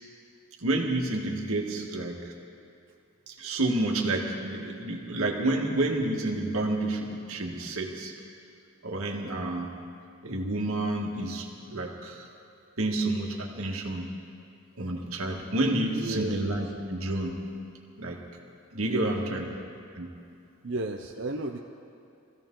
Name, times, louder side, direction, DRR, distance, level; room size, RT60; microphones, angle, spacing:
voice 1, 0.6-2.2 3.3-8.1 8.8-9.7 10.2-12.3 12.8-14.1 14.8-17.4 18.0-18.2 18.7-19.5 20.0-20.1, right 2 dB, 90° right, 0 dB, 1.8 m, -29 dB
voice 2, 15.9-16.5 18.8-19.6 20.6-21.6, right 2 dB, 60° right, 2 dB, 0.7 m, -34 dB
22.5 x 16.0 x 3.9 m, 2.5 s
head